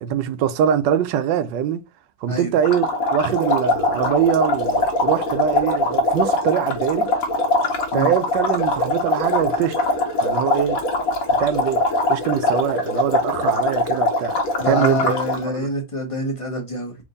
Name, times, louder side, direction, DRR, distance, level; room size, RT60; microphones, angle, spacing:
voice 1, 0.0-1.8 2.2-7.1 7.9-9.8 10.2-10.8 11.4-11.8 12.1-15.1 15.4-15.7, right 9 dB, 85° right, 1.3 m, -23 dB
sound 1, 2.6-15.4, left 2 dB, 55° left, 1.4 m, -22 dB
voice 2, 14.6-16.9, left 1 dB, 20° left, 1.1 m, -26 dB
3.5 x 3.5 x 3.9 m
omnidirectional pair, 1.9 m